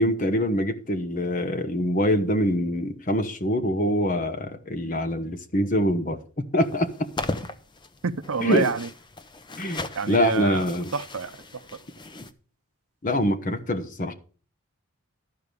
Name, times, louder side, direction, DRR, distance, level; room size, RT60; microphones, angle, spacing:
voice 1, 0.0-6.2 6.5-7.1 8.4-8.7 9.6-10.9 13.0-14.1, equal, 35° left, 1.0 m, -24 dB
sound 1, 6.6-12.3, left 2 dB, 20° left, 0.6 m, -37 dB
voice 2, 8.0-8.9 9.9-11.8, right 5 dB, 70° right, 0.6 m, -29 dB
12.5 x 4.8 x 6.8 m
head